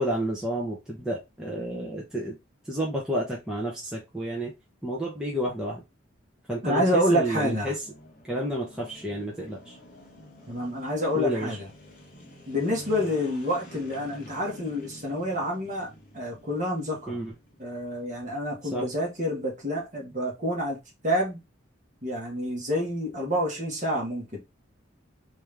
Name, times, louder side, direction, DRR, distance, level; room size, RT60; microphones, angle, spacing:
voice 1, 0.0-2.4 2.7-4.5 4.8-5.8 6.5-7.7 8.3-9.8 11.1-11.5 17.1-17.3 18.7-18.9, equal, 5° right, 0.8 m, -30 dB
voice 2, 6.6-7.7 10.5-11.7 12.5-15.9 16.1-17.2 17.6-21.4 22.0-24.4, equal, 35° right, 1.5 m, -28 dB
sound 1, 6.9-18.3, left 1 dB, 40° left, 1.2 m, -49 dB
3.4 x 3.3 x 3.4 m
head